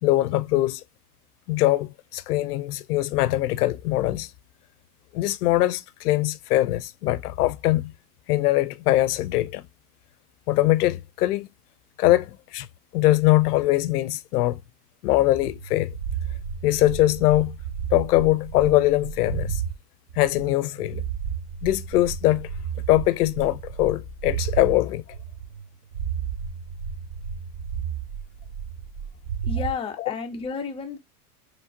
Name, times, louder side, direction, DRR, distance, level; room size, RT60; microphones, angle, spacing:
voice 1, 0.0-0.8 1.5-4.3 5.1-7.9 8.3-9.6 10.5-11.5 12.0-12.7 12.9-14.6 15.0-15.9 16.6-17.6 17.9-19.6 20.2-21.0 21.6-22.5 22.9-25.0 30.0-30.1, left 16 dB, 90° left, 0.6 m, -22 dB
sound 1, 15.3-19.7 20.1-24.7 25.1-25.7 25.9-29.7, right 7 dB, 55° right, 0.8 m, -32 dB
voice 2, 29.4-31.0, left 5 dB, 15° left, 0.5 m, -31 dB
4.5 x 3.2 x 2.4 m
supercardioid pair, 130°, 45 cm